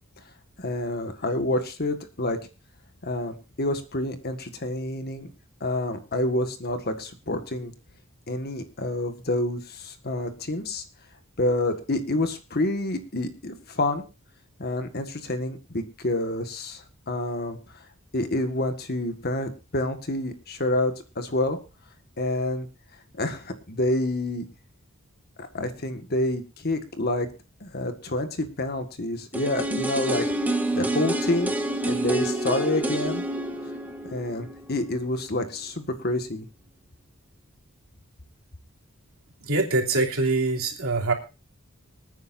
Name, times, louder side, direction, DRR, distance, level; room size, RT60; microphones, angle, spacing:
voice 1, 0.6-2.4 3.0-5.3 5.6-7.7 8.3-10.8 11.4-14.0 14.6-17.6 18.1-21.6 22.2-22.7 23.1-24.5 25.4-27.3 27.6-30.2 30.7-31.6 31.9-33.2 34.1-36.5, left 1 dB, 45° left, 7 dB, 1.8 m, -28 dB
sound 1, 29.3-35.2 35.5-35.6, right 1 dB, 10° right, 1.3 m, -28 dB
voice 2, 39.4-41.1, right 3 dB, 75° right, 1 dB, 3.1 m, -24 dB
25.5 x 9.4 x 2.7 m, 0.31 s
head